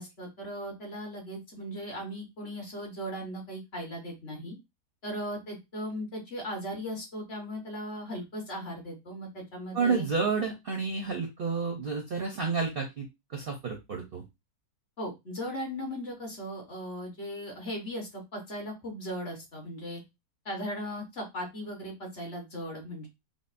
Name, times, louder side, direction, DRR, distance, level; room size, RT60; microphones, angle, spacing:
voice 1, 0.0-4.5 5.0-10.1 15.0-20.0 20.4-23.1, equal, 45° left, 1 dB, 1.3 m, -38 dB
voice 2, 9.7-13.0 13.3-14.2, right 5 dB, 55° right, 2 dB, 0.6 m, -30 dB
5.2 x 2.0 x 2.5 m, 0.22 s
omnidirectional pair, 1.6 m